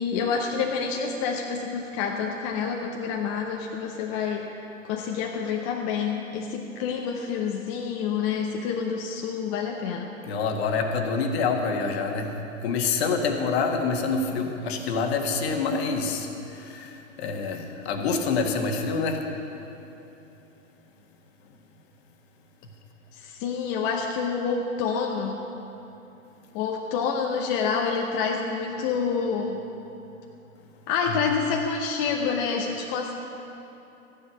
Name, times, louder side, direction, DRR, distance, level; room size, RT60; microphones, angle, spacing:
voice 1, 0.0-4.5 4.8-10.1 23.1-25.4 26.5-29.6 30.9-33.1, left 6 dB, 30° left, 1 dB, 0.9 m, -28 dB
voice 2, 10.2-19.2 31.1-31.2, left 4 dB, 50° left, 4 dB, 1.6 m, -27 dB
14.0 x 10.0 x 5.9 m, 2.9 s
hypercardioid pair, 120°, 40 cm